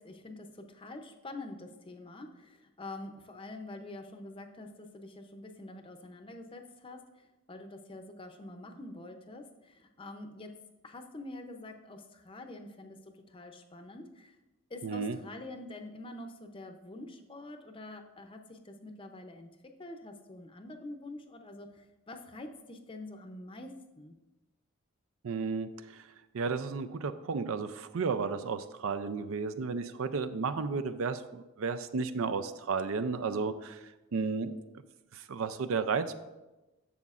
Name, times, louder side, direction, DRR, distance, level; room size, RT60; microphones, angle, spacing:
voice 1, 0.0-10.5 10.8-14.4 14.7-19.5 19.8-24.1, left 2 dB, 25° left, 6 dB, 0.6 m, -46 dB
voice 2, 14.8-15.2 25.2-26.1 26.3-33.8 34.1-34.5 35.1-36.1, right 5 dB, 70° right, 11 dB, 0.4 m, -33 dB
10.5 x 7.1 x 2.4 m, 1.1 s
head